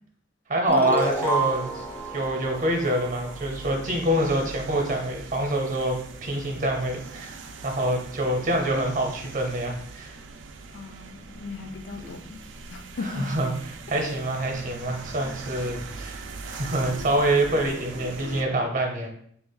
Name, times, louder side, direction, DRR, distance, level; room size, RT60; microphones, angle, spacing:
voice 1, 0.5-1.8 2.1-10.2 13.0-13.5 13.9-19.1, right 1 dB, 45° right, 2 dB, 0.7 m, -26 dB
sound 1, 0.7-3.9, right 2 dB, 10° left, 0.5 m, -30 dB
sound 2, 1.0-18.4, right 3 dB, 85° right, 0.4 m, -41 dB
voice 2, 10.7-12.4 12.7-13.3 14.0-14.1, left 3 dB, 80° left, 7 dB, 0.4 m, -37 dB
3.3 x 2.4 x 3.8 m, 0.64 s
head